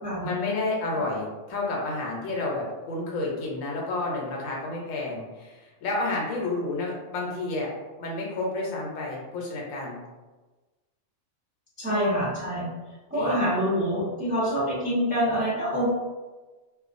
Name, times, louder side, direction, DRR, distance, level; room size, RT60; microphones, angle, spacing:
voice 1, 0.2-7.7 8.0-10.0 11.9-12.2 13.1-13.5, left 2 dB, 85° left, -2 dB, 1.0 m, -30 dB
voice 2, 11.8-12.7 13.1-15.9, equal, 10° right, -9 dB, 0.7 m, -26 dB
2.4 x 2.2 x 2.5 m, 1.2 s
omnidirectional pair, 1.3 m